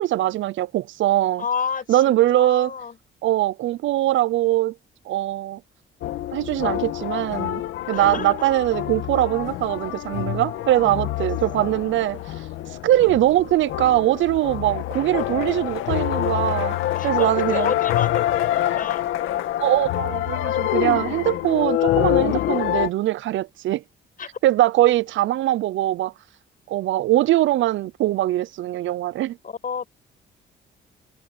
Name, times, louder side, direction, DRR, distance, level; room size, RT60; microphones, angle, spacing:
voice 1, 0.0-1.4 1.9-2.7 3.2-4.7 5.1-5.6 6.3-7.6 7.9-12.2 12.8-16.8 17.0-17.7 19.6-23.8 24.4-26.1 26.7-29.4, right 14 dB, 75° right, 0.6 m, -21 dB
voice 2, 1.4-3.0 7.9-8.3 11.2-11.3 16.9-19.0 24.2-24.3 29.4-29.9, left 6 dB, 45° left, 5.8 m, -30 dB
sound 1, 6.0-22.9, left 13 dB, 90° left, 2.3 m, -26 dB
cardioid pair, 90°, 20 cm